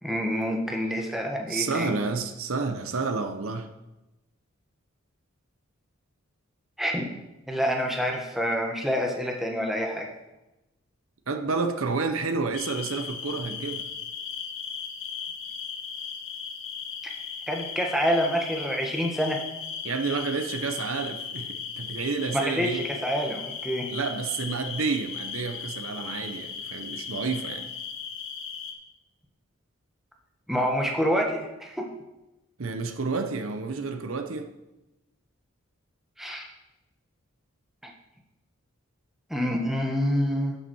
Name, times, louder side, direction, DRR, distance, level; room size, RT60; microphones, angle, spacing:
voice 1, 0.0-1.9 6.8-7.1 7.5-10.1 17.0-17.1 17.5-19.4 22.3-23.9 30.5-31.9 36.2-36.5 37.8-37.9 39.3-40.6, equal, ahead, 0 dB, 1.2 m, -27 dB
voice 2, 1.5-3.7 11.3-13.9 19.8-22.8 23.9-27.7 32.6-34.5, right 4 dB, 80° right, 7 dB, 0.9 m, -30 dB
sound 1, 12.5-28.7, left 6 dB, 75° left, 1.4 m, -37 dB
11.0 x 7.1 x 4.6 m, 0.97 s
head